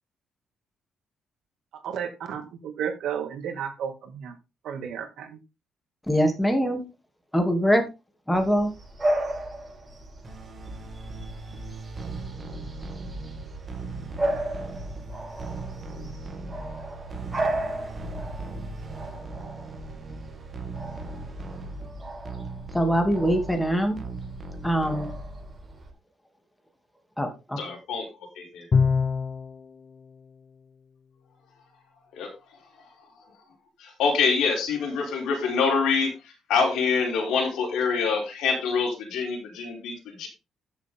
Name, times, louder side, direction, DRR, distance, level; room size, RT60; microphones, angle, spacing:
voice 1, 1.8-4.3 4.6-5.4, right 8 dB, 70° right, 6 dB, 2.4 m, -33 dB
voice 2, 6.0-6.8 7.3-7.8 8.3-8.7 22.7-24.0 24.6-25.1 27.2-27.6, equal, 5° left, 5 dB, 2.8 m, -23 dB
Bark / Bird vocalization bird call bird song, 8.3-25.9, right 1 dB, 15° right, 6.5 m, -35 dB
sound 1, 10.2-25.7, right 2 dB, 30° right, 2.5 m, -38 dB
voice 3, 27.6-28.7 32.1-33.3 33.8-40.3, left 5 dB, 85° left, 1 dB, 5.5 m, -26 dB
Bowed string instrument, 28.7-29.6, left 5 dB, 30° left, 0.5 m, -22 dB
13.0 x 7.3 x 3.8 m, 0.27 s
cardioid pair, 140°, 0 cm